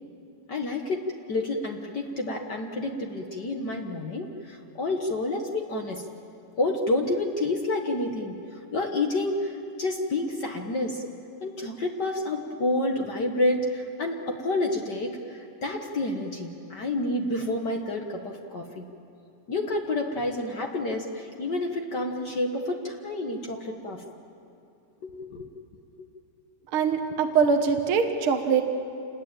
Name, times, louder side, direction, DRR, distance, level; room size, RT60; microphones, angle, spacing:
voice 1, 0.5-6.0 6.6-8.3 8.7-11.0 11.4-18.9 19.5-24.0 25.0-25.5, left 2 dB, 65° left, 2 dB, 1.0 m, -29 dB
voice 2, 26.7-28.6, right 6 dB, 55° right, 5 dB, 1.5 m, -23 dB
28.5 x 20.5 x 8.9 m, 2.6 s
omnidirectional pair, 4.1 m